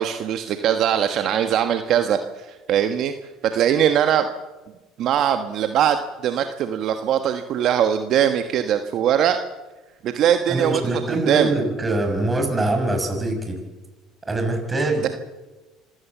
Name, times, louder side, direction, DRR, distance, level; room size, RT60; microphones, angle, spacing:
voice 1, 0.0-3.1 3.4-4.3 5.0-6.0 6.2-9.4 10.0-10.8 11.1-11.5 15.0-15.1, right 9 dB, 60° right, 8 dB, 1.3 m, -21 dB
voice 2, 10.5-13.6 14.3-15.1, right 2 dB, 20° right, 4 dB, 6.3 m, -23 dB
25.5 x 16.0 x 7.4 m, 1.2 s
supercardioid pair, 80°, 0 cm